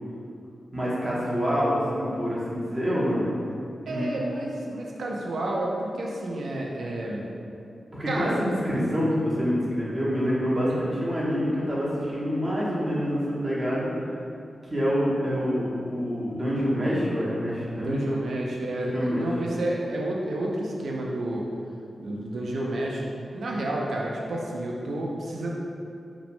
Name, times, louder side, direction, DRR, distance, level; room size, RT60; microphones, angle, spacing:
voice 1, 0.7-3.4 3.9-4.1 7.9-13.9 14.6-18.0 18.9-19.3, equal, 30° right, -7 dB, 0.7 m, -26 dB
voice 2, 3.9-7.3 8.1-8.4 10.7-11.0 17.7-21.5 22.0-23.1 23.3-25.5, right 1 dB, 85° right, -2 dB, 0.3 m, -30 dB
2.9 x 2.0 x 2.5 m, 2.5 s
wide cardioid pair, 85°, 0 cm